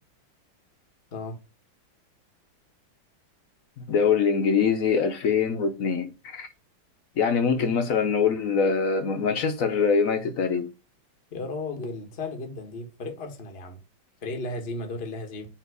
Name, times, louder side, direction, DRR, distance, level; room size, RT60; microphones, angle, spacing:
voice 1, 3.9-6.5 7.2-10.7, left 6 dB, 60° left, 0.9 m, -23 dB
voice 2, 11.3-13.8 14.2-15.5, left 2 dB, 35° left, 1.3 m, -34 dB
7.5 x 2.9 x 4.7 m
omnidirectional pair, 2.1 m